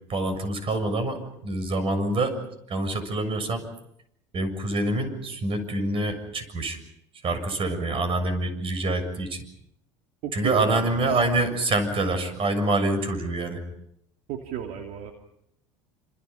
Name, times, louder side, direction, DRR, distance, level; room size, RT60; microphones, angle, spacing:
voice 1, 0.1-2.4 2.7-3.6 4.3-6.8 7.2-9.4 10.3-13.6, right 2 dB, 35° right, 10 dB, 6.9 m, -26 dB
voice 2, 10.2-11.0 14.3-15.1, right 9 dB, 55° right, 4 dB, 2.8 m, -33 dB
28.5 x 27.5 x 5.7 m, 0.75 s
hypercardioid pair, 75°, 15 cm